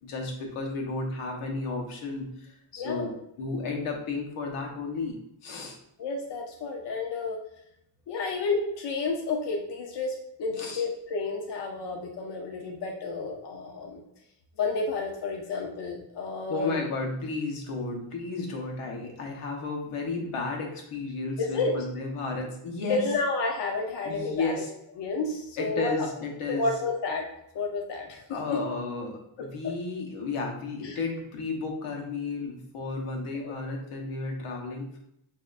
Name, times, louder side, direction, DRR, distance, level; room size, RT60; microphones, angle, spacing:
voice 1, 0.0-3.1 3.4-5.1 5.4-5.8 10.6-10.8 16.5-23.0 24.0-24.7 25.6-26.7 28.3-35.0, left 3 dB, 85° left, 1 dB, 1.2 m, -33 dB
voice 2, 2.8-3.1 6.0-7.4 8.1-14.1 14.6-16.8 21.4-21.7 22.9-24.5 25.0-26.1 26.5-27.3 27.5-28.6 29.4-29.5 30.8-31.0 33.3-33.6, left 3 dB, 55° left, 1 dB, 0.8 m, -31 dB
7.5 x 2.8 x 2.5 m, 0.78 s
cardioid pair, 130°, 50 cm